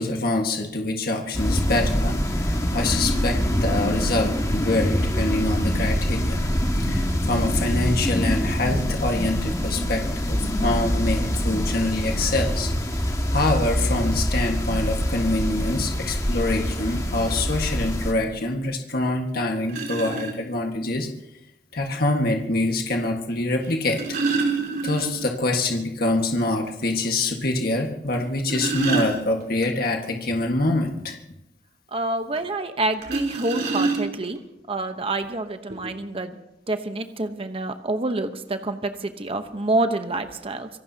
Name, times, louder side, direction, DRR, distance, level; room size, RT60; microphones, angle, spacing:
voice 1, 0.0-6.5 6.8-12.7 13.0-21.1 21.7-24.0 24.8-31.2, left 2 dB, 55° left, 2 dB, 1.6 m, -25 dB
sound 1, 1.3-18.1, equal, 20° left, 1.8 m, -24 dB
sound 2, 19.0-19.1 19.7-20.3 21.7-21.8 23.6-25.4 25.7-25.8 26.2-26.3 26.8-26.9 28.1-29.7 33.0-34.4 35.2-35.3 35.7-35.9, right 4 dB, 60° right, 3.8 m, -27 dB
voice 2, 31.9-34.4 34.7-36.4 36.7-40.7, right 2 dB, 35° right, 8 dB, 1.0 m, -27 dB
25.5 x 17.5 x 2.8 m, 0.87 s
head